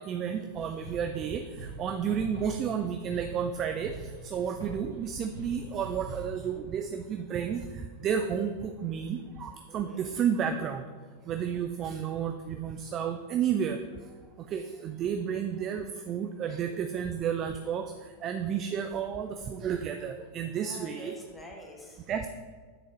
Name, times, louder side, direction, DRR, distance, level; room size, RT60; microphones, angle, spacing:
voice 1, 0.0-3.9 4.2-7.6 8.0-10.8 11.3-13.8 14.5-17.8 18.2-21.1 22.1-22.3, right 8 dB, 30° right, 6 dB, 0.3 m, -31 dB
sound 1, 0.6-6.4, right 3 dB, 85° right, 1.7 m, -43 dB
voice 2, 9.7-10.1 13.6-14.8 17.4-18.0 18.4-18.5 20.6-22.2, left 1 dB, 10° left, 0 dB, 1.0 m, -50 dB
9.4 x 3.9 x 3.0 m, 1.5 s
figure-of-eight pair, 90°, 0 cm